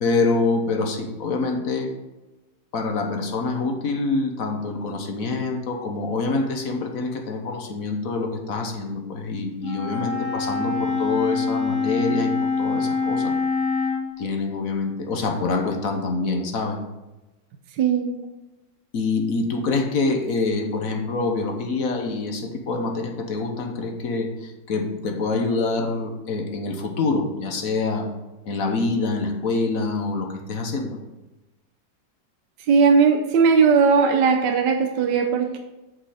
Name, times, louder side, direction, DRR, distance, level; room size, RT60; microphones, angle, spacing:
voice 1, 0.0-1.9 2.7-13.3 14.2-16.8 18.9-28.1 28.4-31.0, left 3 dB, 55° left, 3 dB, 1.4 m, -26 dB
Wind instrument woodwind instrument, 9.6-14.1, left 4 dB, 55° right, 3.0 m, -24 dB
voice 2, 17.8-18.2 32.7-35.6, right 5 dB, 70° right, 3 dB, 1.4 m, -18 dB
8.7 x 5.5 x 5.0 m, 1.1 s
omnidirectional pair, 2.0 m